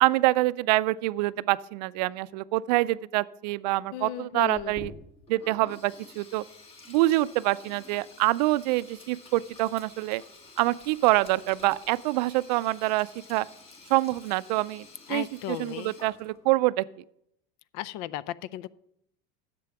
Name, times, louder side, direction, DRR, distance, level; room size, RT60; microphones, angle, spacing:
voice 1, 0.0-4.9 5.3-6.4 6.9-10.2 10.6-13.5 13.9-16.8, right 19 dB, 85° right, 18 dB, 0.4 m, -26 dB
voice 2, 3.9-4.7 15.1-15.9 17.7-18.7, left 13 dB, 70° left, 19 dB, 0.5 m, -35 dB
Sink (filling or washing), 4.5-16.5, left 3 dB, 30° left, 1.7 m, -50 dB
10.5 x 7.6 x 5.8 m, 0.76 s
supercardioid pair, 140°, 21 cm